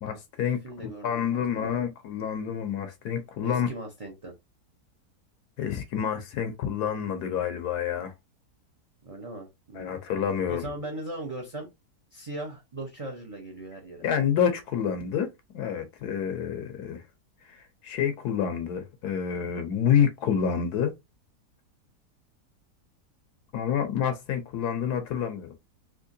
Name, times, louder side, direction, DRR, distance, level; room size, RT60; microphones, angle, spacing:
voice 1, 0.0-0.6 1.0-3.7 5.6-8.1 9.7-10.6 14.0-17.0 17.4-20.9 23.5-25.5, left 8 dB, 75° left, 1.2 m, -28 dB
voice 2, 0.6-1.7 3.4-4.3 9.0-10.0 10.5-11.7 12.1-14.0, right 2 dB, 30° right, 0.7 m, -39 dB
3.6 x 2.8 x 2.6 m
omnidirectional pair, 1.7 m